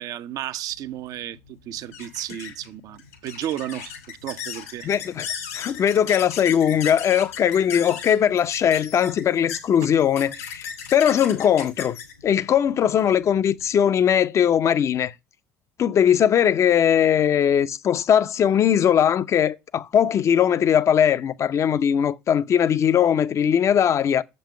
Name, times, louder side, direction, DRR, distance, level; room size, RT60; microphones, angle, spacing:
voice 1, 0.0-4.9, right 12 dB, 50° right, 0.6 m, -33 dB
sound 1, 0.8-13.7, left 7 dB, 80° left, 2.5 m, -37 dB
voice 2, 4.8-5.3 5.5-12.0 12.2-15.1 15.8-24.2, left 9 dB, 40° left, 0.6 m, -20 dB
7.3 x 5.4 x 6.5 m
figure-of-eight pair, 60°, 8 cm